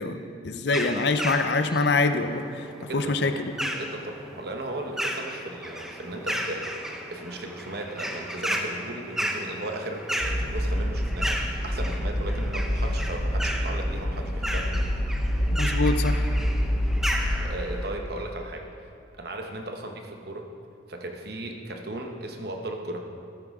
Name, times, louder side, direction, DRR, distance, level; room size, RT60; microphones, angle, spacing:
voice 1, 0.0-2.7 2.9-3.5 15.5-16.3, left 3 dB, 60° left, 8 dB, 0.6 m, -25 dB
sound 1, 0.7-17.9, equal, ahead, 0.6 m, -34 dB
voice 2, 2.8-3.3 3.7-14.8 17.4-18.7 19.2-20.5 20.9-23.0, right 1 dB, 55° right, 3 dB, 1.0 m, -36 dB
sound 2, 10.2-17.4, equal, 35° left, 2.6 m, -27 dB
14.5 x 9.5 x 3.7 m, 2.4 s
head